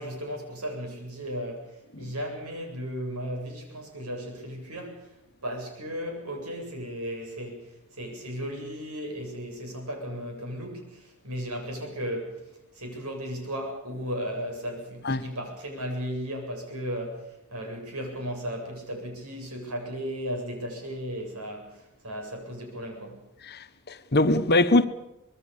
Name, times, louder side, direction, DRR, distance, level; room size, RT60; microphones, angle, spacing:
voice 1, 0.0-5.1 5.4-12.4 12.7-23.3, equal, 85° right, 8.0 m, -35 dB
voice 2, 23.9-24.9, left 2 dB, 45° left, 1.1 m, -22 dB
25.5 x 21.5 x 7.1 m
head